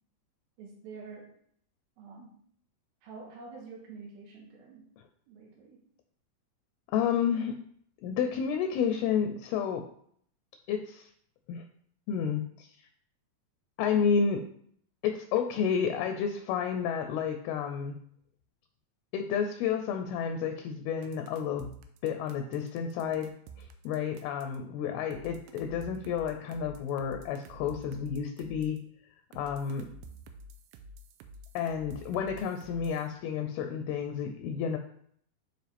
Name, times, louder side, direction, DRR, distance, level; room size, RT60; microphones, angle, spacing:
voice 1, 0.6-1.3 2.0-2.3 3.0-4.9 5.3-5.8, right 4 dB, 70° right, 0 dB, 2.8 m, -47 dB
voice 2, 6.9-7.6 8.0-9.9 10.7-11.1 11.5-11.6 12.1-12.7 13.8-14.4 15.0-18.0 19.1-21.7 22.0-28.8 29.3-29.9 31.5-34.8, left 7 dB, 80° left, 6 dB, 2.4 m, -31 dB
sound 1, 21.0-24.6 25.1-28.8 29.3-33.1, right 2 dB, 85° right, 2.8 m, -49 dB
9.1 x 4.3 x 3.4 m, 0.64 s
omnidirectional pair, 4.8 m